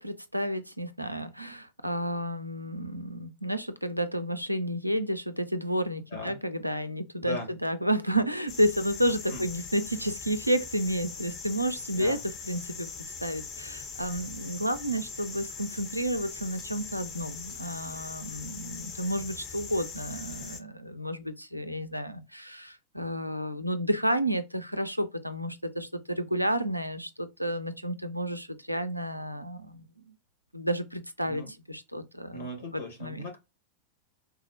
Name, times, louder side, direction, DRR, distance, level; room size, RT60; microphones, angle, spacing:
voice 1, 0.0-12.2 12.5-12.9 13.2-29.9 30.5-33.2, equal, 90° right, 0.3 m, -31 dB
voice 2, 7.2-7.5 9.3-9.5 11.9-12.2 31.2-31.5 32.3-33.4, left 1 dB, 65° left, 1.4 m, -38 dB
sound 1, 8.5-20.6, left 5 dB, 35° left, 0.6 m, -41 dB
3.5 x 2.0 x 2.7 m
figure-of-eight pair, 90°, 0 cm